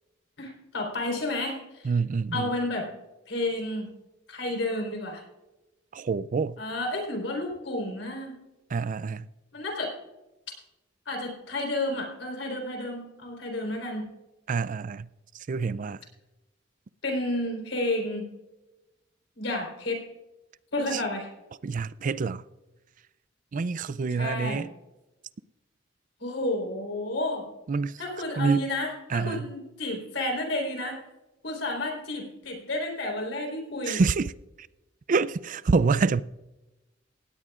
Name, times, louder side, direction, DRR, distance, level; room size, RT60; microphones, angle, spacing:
voice 1, 0.4-1.9 2.3-2.9 3.3-3.9 4.3-5.2 6.6-8.4 9.5-9.9 11.1-14.1 17.0-18.3 19.4-20.0 20.7-21.3 24.2-24.7 26.2-27.5 28.0-31.0 31.4-34.0, left 1 dB, 80° left, 4.0 m, -31 dB
voice 2, 1.8-2.5 5.9-6.6 8.7-9.3 14.5-15.1 15.5-16.0 20.9-21.0 21.6-22.4 23.5-24.7 27.7-28.0 28.4-28.7 29.1-29.5 33.9-34.3 35.1-36.2, right 4 dB, 45° right, 0.4 m, -26 dB
18.5 x 17.0 x 2.4 m
head